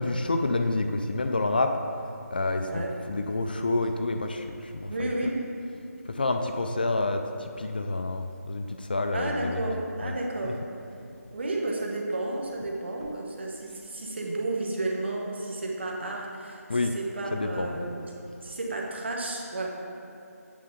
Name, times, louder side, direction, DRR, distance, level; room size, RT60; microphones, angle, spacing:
voice 1, 0.0-1.8 2.3-5.1 6.1-9.7 10.0-10.2 10.4-10.6 16.7-16.9 17.3-17.8, left 2 dB, 35° left, 6 dB, 0.3 m, -28 dB
voice 2, 4.9-5.4 9.1-10.6 11.3-17.9 18.4-19.7, right 2 dB, 45° right, 0 dB, 1.2 m, -32 dB
8.5 x 7.3 x 3.8 m, 2.8 s
figure-of-eight pair, 170°, 9 cm